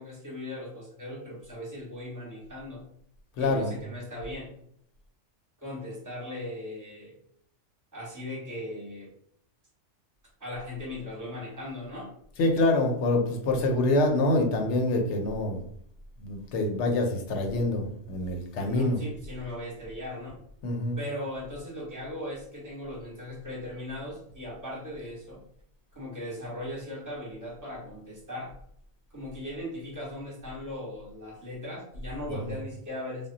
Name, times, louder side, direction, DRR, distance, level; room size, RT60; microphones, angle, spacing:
voice 1, 0.0-2.8 3.4-4.5 5.6-7.1 7.9-9.1 10.4-12.1 18.6-20.4 21.0-25.4 25.9-28.5 29.1-33.3, left 1 dB, 20° right, -3 dB, 0.7 m, -38 dB
voice 2, 3.4-3.7 12.4-15.6 16.2-19.0 20.6-21.0 32.4-32.5, left 2 dB, 70° left, 3 dB, 0.9 m, -26 dB
2.1 x 2.1 x 3.7 m, 0.67 s
omnidirectional pair, 1.3 m